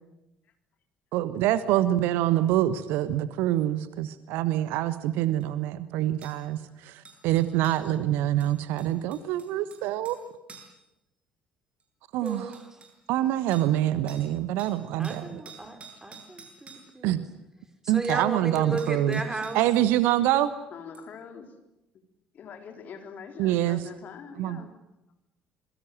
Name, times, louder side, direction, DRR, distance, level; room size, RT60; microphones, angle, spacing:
voice 1, 1.1-10.2 12.1-12.5 13.1-15.4 17.0-17.2 17.9-19.2 19.5-20.5 23.4-23.8 24.4-24.6, right 13 dB, 60° right, 14 dB, 1.2 m, -25 dB
sound 1, 5.4-5.5 6.2-6.4 7.0-7.9 8.4-10.2 10.5-10.8 11.8-11.9 12.2-12.9 13.5-13.8 14.1-14.3 14.6-16.9 18.4-18.5 18.8-19.7 20.9-21.0, right 5 dB, 30° right, 7.8 m, -49 dB
voice 2, 12.2-12.9 15.0-17.2 17.8-19.6, right 2 dB, 15° right, 6 dB, 5.3 m, -34 dB
voice 3, 20.7-21.5 22.3-24.7, left 6 dB, 45° left, 5 dB, 3.9 m, -43 dB
27.0 x 23.0 x 7.7 m, 0.92 s
figure-of-eight pair, 55°, 4 cm